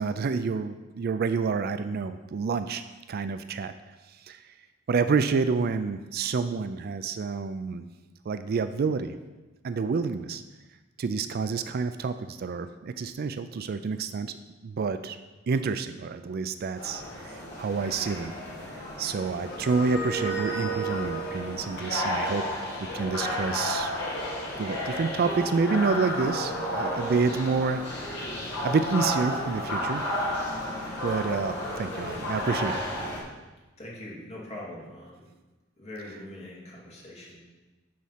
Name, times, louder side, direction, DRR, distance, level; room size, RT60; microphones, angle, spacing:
voice 1, 0.0-2.8 3.1-3.7 4.2-4.5 4.9-7.8 8.3-9.1 9.6-10.4 11.0-14.4 14.6-15.2 15.5-18.3 19.0-22.6 22.9-23.9 24.6-28.3 28.6-30.1 31.0-32.8, right 5 dB, 50° right, 11 dB, 0.4 m, -28 dB
sound 1, 16.8-33.2, equal, 60° left, 2.0 m, -32 dB
voice 2, 33.8-35.3 35.8-37.4, left 1 dB, 35° left, -5 dB, 2.5 m, -42 dB
9.4 x 4.2 x 5.7 m, 1.2 s
head